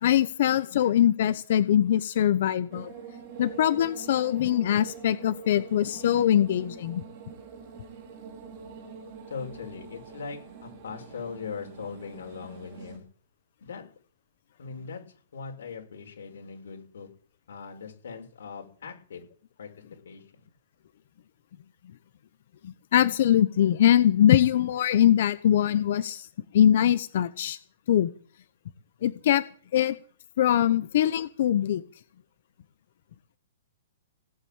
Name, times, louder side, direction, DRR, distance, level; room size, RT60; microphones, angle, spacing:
voice 1, 0.0-2.9 3.4-7.0 22.6-26.3 26.5-27.6 27.9-28.1 29.0-29.4 29.7-30.0 30.4-31.8, left 11 dB, 45° left, 14 dB, 0.8 m, -22 dB
sound 1, 2.7-13.0, right 6 dB, 30° right, 3.2 m, -45 dB
voice 2, 9.3-13.0 13.6-13.8 14.6-17.1 17.5-19.2 19.6-19.7 20.0-20.2, left 5 dB, 70° left, 2 dB, 6.3 m, -40 dB
18.0 x 8.5 x 8.8 m, 0.43 s
hypercardioid pair, 180°, 0 cm